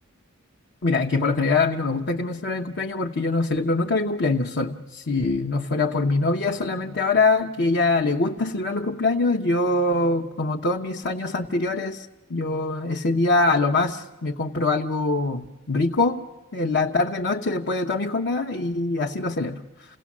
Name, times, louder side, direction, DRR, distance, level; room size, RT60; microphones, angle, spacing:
voice 1, 0.8-16.2 16.5-19.6, left 3 dB, 55° left, 1 dB, 1.0 m, -23 dB
28.0 x 17.5 x 7.4 m, 1.2 s
head